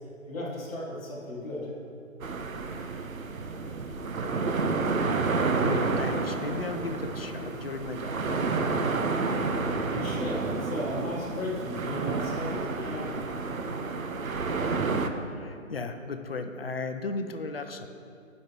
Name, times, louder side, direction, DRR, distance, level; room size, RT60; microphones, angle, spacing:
voice 1, 0.3-1.7 9.9-13.2, left 1 dB, 10° left, -9 dB, 1.0 m, -35 dB
sound 1, 2.2-15.1, right 4 dB, 85° right, 0.8 m, -30 dB
voice 2, 5.6-8.6 15.3-17.9, left 3 dB, 45° left, 7 dB, 0.6 m, -35 dB
14.5 x 5.4 x 3.0 m, 2.6 s
figure-of-eight pair, 155°, 40 cm